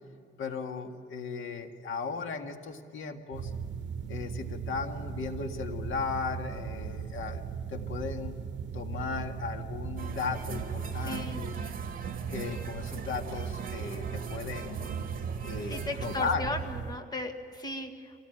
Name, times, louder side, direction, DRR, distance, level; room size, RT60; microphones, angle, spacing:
voice 1, 0.4-3.5 4.1-7.4 7.7-8.4 8.7-11.5 12.3-14.9 15.4-16.5, left 5 dB, 85° left, 5 dB, 1.9 m, -36 dB
sound 1, 3.3-17.0, right 7 dB, 65° right, 1.0 m, -38 dB
sound 2, 10.0-16.3, right 5 dB, 45° right, 2.0 m, -42 dB
voice 2, 11.1-11.4 15.7-18.1, left 2 dB, 20° left, 4 dB, 1.8 m, -36 dB
26.0 x 18.0 x 9.2 m, 2.5 s
wide cardioid pair, 155°, 20 cm